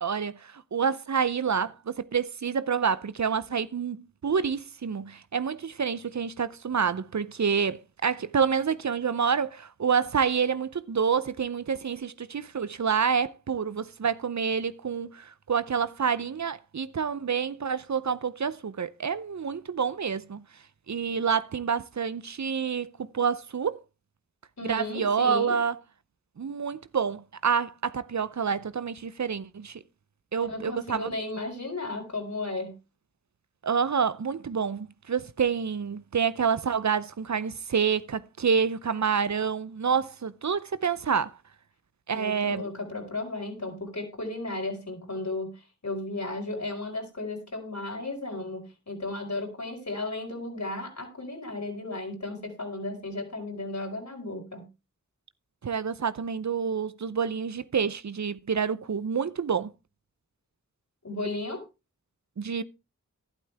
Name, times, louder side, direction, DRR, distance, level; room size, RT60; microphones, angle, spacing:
voice 1, 0.0-20.4 20.9-22.9 23.1-23.8 24.6-25.8 26.4-29.8 30.3-31.1 33.6-41.4 42.1-42.6 55.6-59.7 62.4-62.6, right 6 dB, 65° right, 0.7 m, -28 dB
voice 2, 24.6-25.5 30.5-32.8 42.1-54.7 61.0-61.6, left 2 dB, 60° left, 5.1 m, -34 dB
12.0 x 11.5 x 3.5 m
cardioid pair, 40°, 31 cm